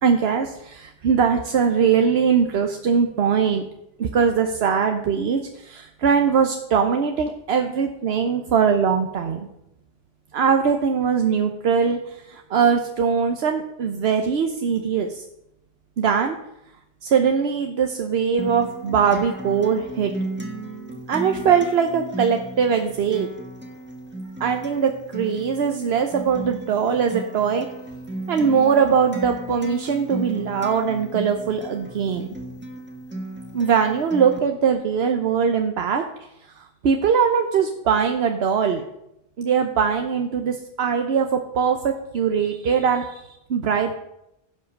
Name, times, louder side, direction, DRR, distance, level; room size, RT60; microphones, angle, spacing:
voice 1, 0.0-3.6 4.0-9.4 10.3-15.2 16.0-16.4 17.0-20.1 21.1-23.3 24.4-27.7 28.3-32.3 33.5-36.0 36.8-38.8 39.4-43.9, right 6 dB, 80° right, 5 dB, 1.0 m, -21 dB
Acoustic guitar, 18.4-34.4, right 1 dB, 10° right, 1.6 m, -35 dB
15.5 x 5.4 x 6.5 m, 0.85 s
omnidirectional pair, 1.0 m